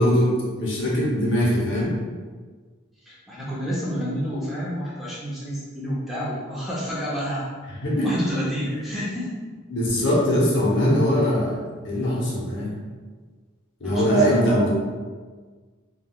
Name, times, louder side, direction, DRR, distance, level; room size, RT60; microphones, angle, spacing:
voice 1, 0.0-2.0 7.8-8.2 9.7-11.6 11.8-12.7 13.8-14.7, equal, 60° left, -4 dB, 0.7 m, -21 dB
voice 2, 3.0-7.4 8.0-9.3 13.8-14.5, equal, ahead, -8 dB, 0.5 m, -29 dB
3.5 x 2.2 x 2.2 m, 1.5 s
head